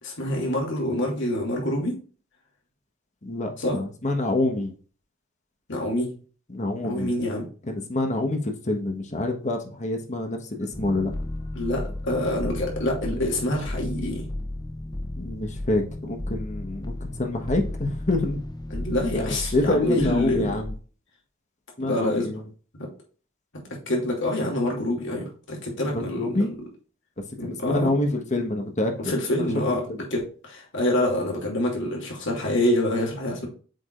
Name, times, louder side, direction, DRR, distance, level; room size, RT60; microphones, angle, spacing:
voice 1, 0.0-2.0 3.6-3.8 5.7-6.2 6.8-7.5 11.5-14.2 18.7-20.6 21.8-22.3 22.8-22.9 23.7-26.5 27.4-27.9 29.0-33.5, left 1 dB, 65° left, -1 dB, 2.7 m, -26 dB
voice 2, 3.2-4.7 6.5-7.1 7.7-11.1 15.2-18.4 19.1-20.7 21.8-22.4 25.9-26.5 27.4-29.1 29.4-29.5 29.9-30.0, left 2 dB, 35° left, 4 dB, 1.3 m, -27 dB
sound 1, 10.7-20.8, left 1 dB, 20° left, 0.7 m, -34 dB
7.8 x 5.0 x 2.5 m, 0.39 s
head